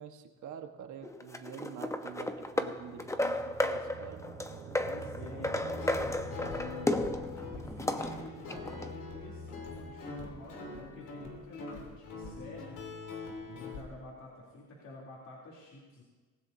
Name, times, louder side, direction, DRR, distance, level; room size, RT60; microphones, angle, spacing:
voice 1, 0.0-4.2, right 8 dB, 75° right, 5 dB, 1.5 m, -46 dB
sound 1, 1.0-8.9, left 1 dB, 10° left, 1.0 m, -34 dB
sound 2, 1.9-12.2, right 6 dB, 50° right, 1.2 m, -49 dB
voice 2, 4.8-7.0 7.4-13.1 13.4-16.0, left 3 dB, 65° left, -4 dB, 3.5 m, -49 dB
Guitar, 5.5-13.8, left 3 dB, 85° left, 3.5 m, -43 dB
25.5 x 16.0 x 2.8 m, 1.3 s
cardioid pair, 90°, 30 cm